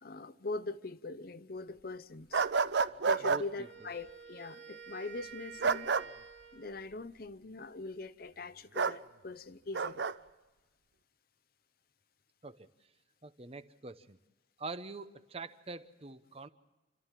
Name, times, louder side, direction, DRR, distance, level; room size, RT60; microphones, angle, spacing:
voice 1, 0.0-2.5 3.0-5.9 6.5-10.1, left 3 dB, 50° left, 0.7 m, -42 dB
sound 1, 2.3-3.4 5.6-6.1 8.8-9.0 9.7-10.1, right 5 dB, 65° right, 0.6 m, -29 dB
voice 2, 3.2-3.7 12.4-12.7 13.2-14.2 14.6-16.5, right 3 dB, 30° right, 0.8 m, -44 dB
Wind instrument woodwind instrument, 3.5-6.9, right 7 dB, 90° right, 2.5 m, -50 dB
29.0 x 13.5 x 7.4 m
head